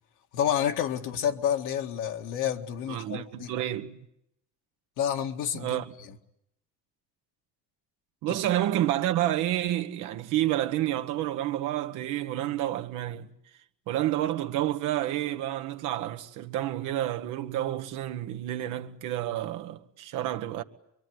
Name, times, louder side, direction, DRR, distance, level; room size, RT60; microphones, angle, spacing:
voice 1, 0.3-3.5 5.0-5.8 8.3-8.4, left 9 dB, 80° left, 2.0 m, -29 dB
voice 2, 2.9-4.1 5.5-5.9 8.2-13.3 13.9-20.6, right 13 dB, 90° right, 1.4 m, -29 dB
25.5 x 23.5 x 9.5 m
cardioid pair, 100°, 30 cm